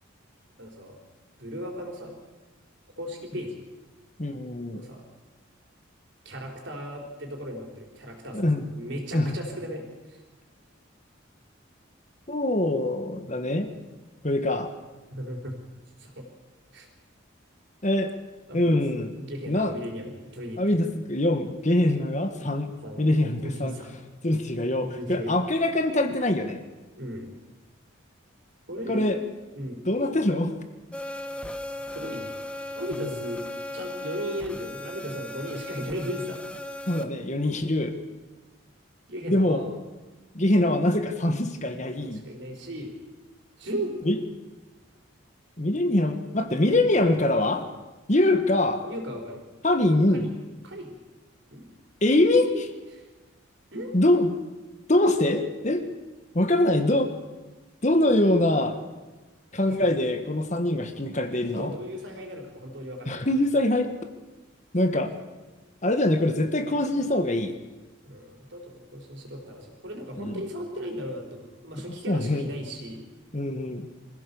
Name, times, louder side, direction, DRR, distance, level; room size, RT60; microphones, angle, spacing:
voice 1, 0.6-1.0 1.4-2.2 3.0-3.7 4.7-5.0 6.2-10.2 15.1-15.6 16.0-16.3 16.7-16.9 18.5-18.8 19.2-20.8 22.8-23.1 23.4-24.0 24.8-25.4 27.0-27.4 28.7-29.1 29.5-29.8 31.9-32.3 32.7-33.4 33.7-36.4 36.8-36.9 39.1-39.7 42.0-43.0 43.6-44.2 48.8-49.5 50.1-50.4 50.6-51.0 51.5-51.7 52.3-52.7 52.9-53.1 53.7-54.0 59.5-60.1 61.6-63.2 68.0-73.1, equal, 60° right, 2 dB, 4.3 m, -36 dB
voice 2, 4.2-4.8 8.3-8.6 9.1-9.3 12.3-13.7 14.2-14.7 17.8-18.1 18.5-19.1 19.5-19.7 20.6-22.7 23.0-23.7 24.2-26.6 28.9-29.2 29.9-30.6 36.9-37.9 39.3-39.6 40.3-42.2 44.1-44.2 45.6-47.7 48.1-48.8 49.6-50.2 52.0-52.5 53.9-54.3 54.9-55.8 56.3-57.1 57.8-58.8 59.5-61.7 63.1-63.9 64.7-65.1 65.8-67.5 70.2-70.4 72.1-72.5 73.3-73.9, left 1 dB, 35° left, 7 dB, 1.5 m, -23 dB
sound 1, 30.9-37.0, left 1 dB, 5° left, 1.0 m, -37 dB
24.0 x 16.0 x 7.0 m, 1.2 s
head